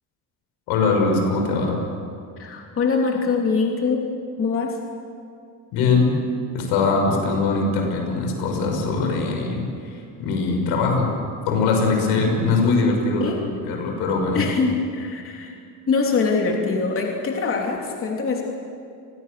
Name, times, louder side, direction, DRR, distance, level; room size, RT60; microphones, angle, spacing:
voice 1, 0.7-1.8 5.7-6.1 6.5-9.6 10.2-11.1 11.5-13.3 13.7-14.4, left 3 dB, 85° left, 2 dB, 6.2 m, -21 dB
voice 2, 2.4-4.0 4.4-4.7 13.2-13.4 14.3-15.5 15.9-18.4, left 4 dB, 35° left, 0 dB, 3.2 m, -23 dB
30.0 x 20.5 x 6.8 m, 2.4 s
cardioid pair, 130°, 38 cm